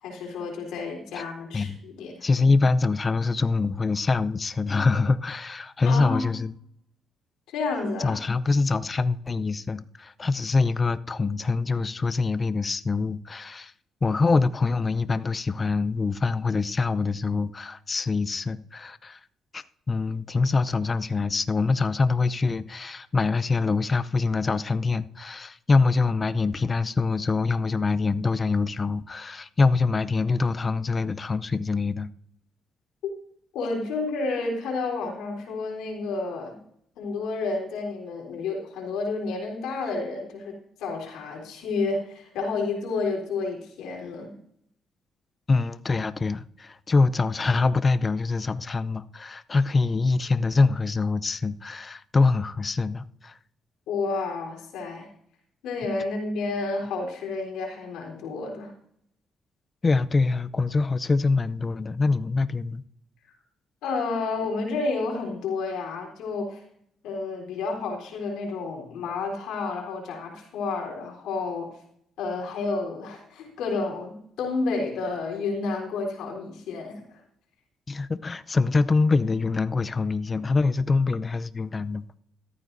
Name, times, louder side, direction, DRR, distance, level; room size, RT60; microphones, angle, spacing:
voice 1, 0.0-2.3 5.8-6.2 7.5-8.2 33.0-33.1 33.5-36.6 37.0-44.3 53.9-55.1 55.6-58.7 63.8-66.6 67.0-71.7 72.2-77.2, left 3 dB, 90° left, 3.9 m, -30 dB
voice 2, 2.2-6.5 8.0-13.7 14.0-19.2 19.5-32.1 45.5-53.4 59.8-62.8 77.9-82.2, left 3 dB, 30° left, 0.6 m, -24 dB
14.5 x 13.5 x 2.7 m
cardioid pair, 90°, 0 cm